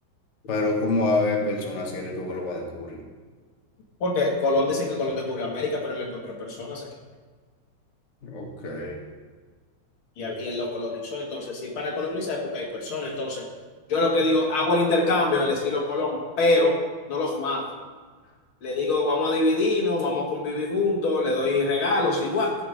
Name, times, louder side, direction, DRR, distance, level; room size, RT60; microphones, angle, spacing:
voice 1, 0.5-3.0 8.2-9.0, left 2 dB, 35° left, 0 dB, 1.6 m, -27 dB
voice 2, 4.0-6.9 10.2-13.5 13.9-16.8 17.1-17.6 18.6-22.6, left 2 dB, 80° left, 0 dB, 2.5 m, -25 dB
14.0 x 5.9 x 5.0 m, 1.5 s
omnidirectional pair, 2.3 m